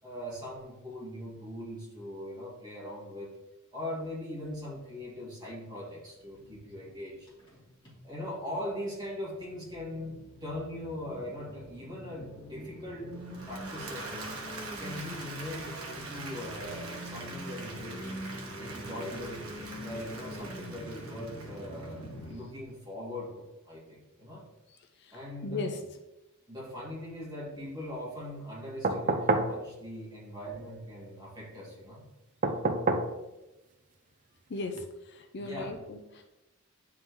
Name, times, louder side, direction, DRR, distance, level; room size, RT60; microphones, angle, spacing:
voice 1, 0.0-3.3 3.7-7.3 8.0-14.3 14.8-18.2 18.6-19.5 19.8-24.4 25.1-25.6 26.5-32.0 35.4-35.8, left 1 dB, 20° right, -6 dB, 2.1 m, -40 dB
sound 1, 6.2-8.8 9.1-22.4, equal, 25° left, 2.0 m, -44 dB
Applause / Crowd, 13.2-22.3, right 3 dB, 90° right, 1.1 m, -44 dB
voice 2, 25.4-25.8 34.5-36.2, left 3 dB, 55° left, 4 dB, 0.6 m, -37 dB
sound 2, 28.8-29.6 32.4-33.1 34.7-34.8, right 3 dB, 35° right, 0.5 m, -27 dB
9.3 x 3.7 x 3.1 m, 1.0 s
head